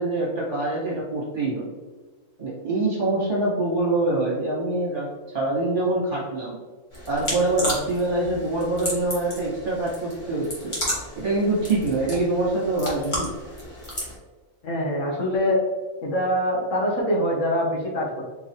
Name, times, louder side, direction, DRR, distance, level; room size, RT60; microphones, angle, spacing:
voice 1, 0.0-1.7 2.4-5.1 5.3-6.6 7.1-10.7 11.1-13.3, right 2 dB, 40° right, -7 dB, 1.7 m, -25 dB
sound 1, 6.9-14.1, equal, 25° left, 1.3 m, -33 dB
voice 2, 14.6-15.6 16.0-18.2, equal, 65° left, -3 dB, 1.4 m, -24 dB
4.6 x 3.1 x 3.0 m, 1.3 s
omnidirectional pair, 1.4 m